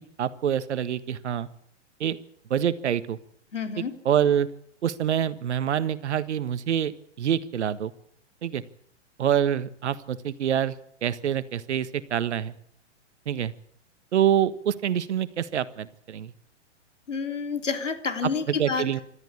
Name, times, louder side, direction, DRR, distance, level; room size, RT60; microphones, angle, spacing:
voice 1, 0.2-1.5 2.0-2.2 2.5-3.2 3.8-4.5 4.8-6.9 7.2-7.9 8.4-8.6 9.2-10.7 11.0-12.5 13.3-13.5 14.1-16.3 18.2-19.0, right 9 dB, 65° right, 14 dB, 1.5 m, -26 dB
voice 2, 3.5-3.9 17.1-18.8, left 5 dB, 80° left, 7 dB, 3.6 m, -29 dB
27.0 x 13.5 x 8.7 m, 0.67 s
figure-of-eight pair, 115°, 36 cm